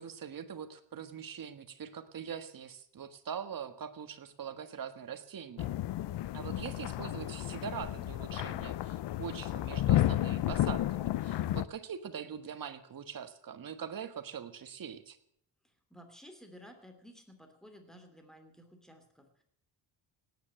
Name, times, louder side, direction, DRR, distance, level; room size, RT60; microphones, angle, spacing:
voice 1, 0.0-5.7 6.3-15.2, right 7 dB, 45° right, 10 dB, 1.6 m, -43 dB
sound 1, 5.6-11.6, left 13 dB, 65° left, 0.7 m, -32 dB
voice 2, 15.9-19.4, equal, ahead, 6 dB, 3.0 m, -54 dB
18.0 x 9.4 x 7.7 m, 0.70 s
cardioid pair, 120°, 45 cm